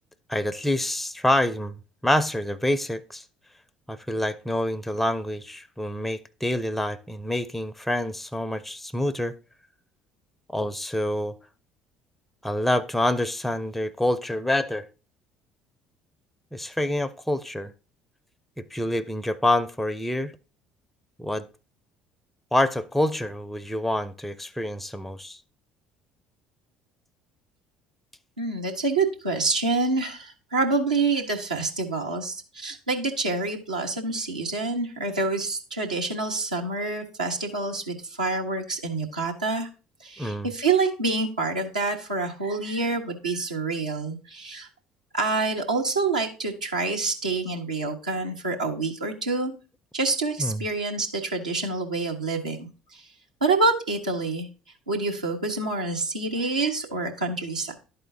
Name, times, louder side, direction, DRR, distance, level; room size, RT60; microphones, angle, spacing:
voice 1, 0.3-1.8 2.0-3.2 3.9-9.3 10.5-11.4 12.4-14.9 16.5-17.7 18.6-20.3 21.2-21.5 22.5-25.4 40.2-40.5 50.4-50.6, left 1 dB, 5° left, 0.5 m, -27 dB
voice 2, 28.4-39.7 40.0-44.7 45.1-49.5 49.9-53.0 53.4-54.5 54.9-57.7, right 3 dB, 85° right, 1.0 m, -27 dB
12.0 x 4.2 x 2.7 m
figure-of-eight pair, 55°, 4 cm